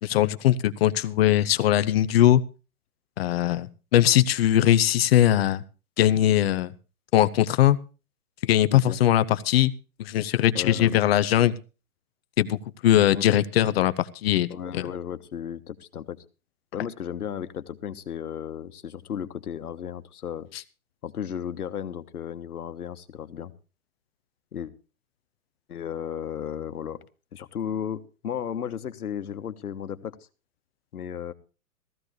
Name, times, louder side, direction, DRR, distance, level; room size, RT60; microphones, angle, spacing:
voice 1, 0.0-2.4 3.2-5.6 6.0-6.7 7.1-7.8 8.4-9.7 10.0-11.5 12.4-12.6 12.8-14.8, left 12 dB, 45° left, 15 dB, 0.8 m, -21 dB
voice 2, 10.5-11.0 13.1-13.4 14.5-16.2 16.7-20.5 21.0-23.5 24.5-24.7 25.7-27.0 27.3-30.2 30.9-31.3, left 8 dB, 80° left, 11 dB, 1.4 m, -34 dB
15.5 x 15.0 x 3.2 m, 0.33 s
hypercardioid pair, 135°, 44 cm